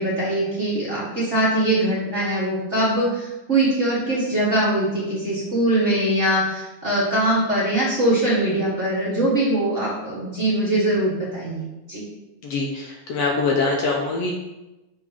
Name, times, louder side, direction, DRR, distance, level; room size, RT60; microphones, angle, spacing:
voice 1, 0.0-12.0, right 1 dB, 30° right, -8 dB, 1.6 m, -22 dB
voice 2, 12.4-14.3, left 3 dB, 70° left, -1 dB, 1.8 m, -23 dB
6.2 x 4.0 x 5.6 m, 1.0 s
omnidirectional pair, 3.3 m